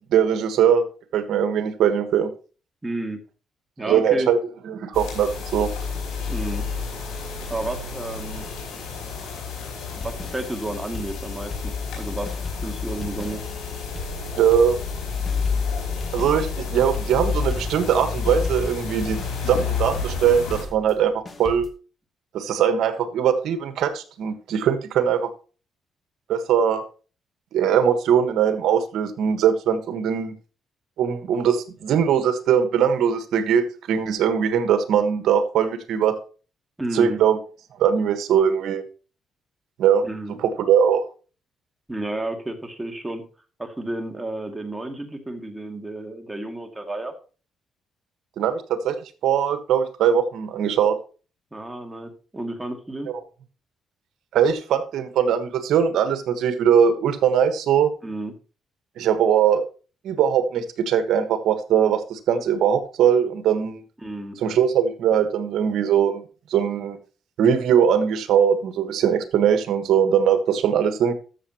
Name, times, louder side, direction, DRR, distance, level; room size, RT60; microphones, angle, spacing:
voice 1, 0.1-0.8 1.1-2.3 3.8-4.4 4.6-5.7 14.4-14.8 16.1-19.2 19.5-21.1 21.4-21.7 22.3-25.3 26.3-26.8 27.5-30.3 31.0-36.1 36.9-37.4 37.8-38.8 39.8-40.0 40.4-41.0 48.4-49.0 49.2-51.0 54.3-57.9 59.0-59.6 60.0-63.8 64.4-66.2 66.5-67.0 67.4-71.1, right 8 dB, 75° right, 10 dB, 1.4 m, -20 dB
voice 2, 2.8-3.2 3.8-4.3 6.3-6.6 7.5-8.5 9.9-13.4 36.8-37.2 40.0-40.4 41.9-43.2 43.6-47.1 51.5-53.1 58.0-58.3 64.0-64.4, right 2 dB, 10° right, 5 dB, 2.3 m, -31 dB
sound 1, 4.9-20.6, left 5 dB, 90° left, 4.6 m, -30 dB
sound 2, 10.0-12.0 12.3-18.0 18.2-21.7, left 2 dB, 30° left, 2.1 m, -38 dB
13.5 x 7.1 x 3.0 m, 0.35 s
cardioid pair, 90°, 0 cm